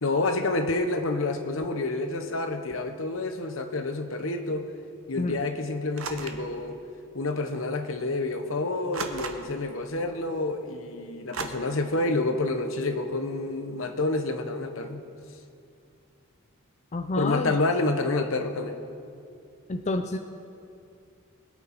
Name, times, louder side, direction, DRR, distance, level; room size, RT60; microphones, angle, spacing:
voice 1, 0.0-4.7 5.1-6.8 7.1-15.0 17.2-18.8, left 2 dB, 75° left, 7 dB, 1.0 m, -28 dB
sound 1, 6.0-6.5 7.5-7.6 8.9-9.7 11.3-11.4, right 4 dB, 85° right, 1.0 m, -35 dB
voice 2, 16.9-17.5 19.7-20.2, left 2 dB, 35° left, 6 dB, 0.5 m, -28 dB
22.0 x 8.4 x 4.2 m, 2.5 s
head